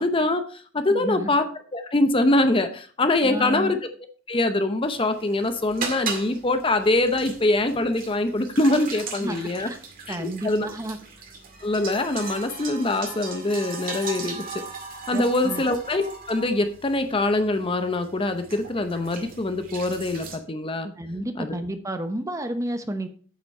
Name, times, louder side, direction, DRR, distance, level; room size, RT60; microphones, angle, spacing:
voice 1, 0.0-1.4 1.7-3.8 4.3-9.7 10.1-10.7 11.6-14.6 15.1-20.9 21.4-21.6, left 2 dB, 25° left, 8 dB, 0.7 m, -24 dB
voice 2, 0.9-1.3 3.2-3.7 9.2-9.8 10.1-11.0 15.1-15.6 21.0-23.1, right 1 dB, 15° right, 8 dB, 0.8 m, -31 dB
sound 1, 4.8-20.4, right 5 dB, 45° right, 2.0 m, -38 dB
8.2 x 8.0 x 4.3 m, 0.42 s
head